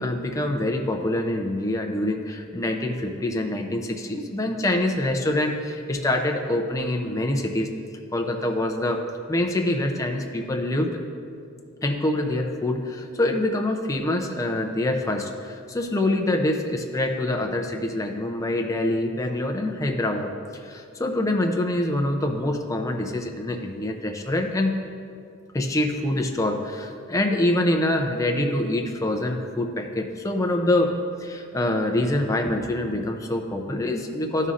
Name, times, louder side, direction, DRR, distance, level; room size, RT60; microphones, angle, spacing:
voice 1, 0.0-7.7 8.1-9.0 9.3-11.0 11.8-20.3 20.6-24.7 25.5-30.9 31.2-34.5, left 1 dB, 15° left, 3 dB, 0.5 m, -25 dB
12.5 x 5.4 x 2.5 m, 2.4 s
head